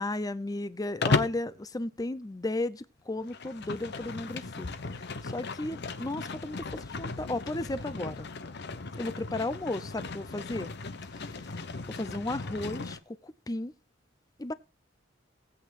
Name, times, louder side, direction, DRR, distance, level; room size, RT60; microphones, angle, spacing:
voice 1, 0.0-4.7 5.0-8.3 9.0-10.7 11.1-11.4 11.9-13.7 14.4-14.5, left 2 dB, 20° left, 0.5 m, -34 dB
Livestock farm animals working animals, 1.0-1.5 3.2-13.0, left 3 dB, 60° left, 0.9 m, -35 dB
18.5 x 8.2 x 2.5 m
head